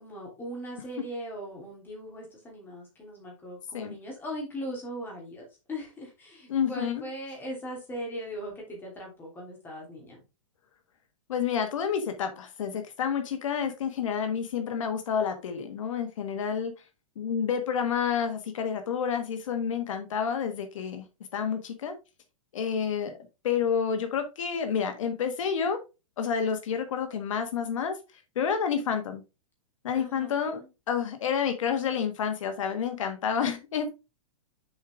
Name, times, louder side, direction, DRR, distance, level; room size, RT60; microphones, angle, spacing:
voice 1, 0.0-10.2 29.9-30.7, equal, 10° left, 2.8 m, -39 dB
voice 2, 6.5-7.0 11.3-16.7 17.2-21.0 21.3-21.9 22.5-23.2 23.4-25.8 26.2-28.0 28.3-29.2 29.8-30.6 30.9-33.9, left 7 dB, 70° left, 1.4 m, -29 dB
7.1 x 5.0 x 3.5 m
hypercardioid pair, 160°, 17 cm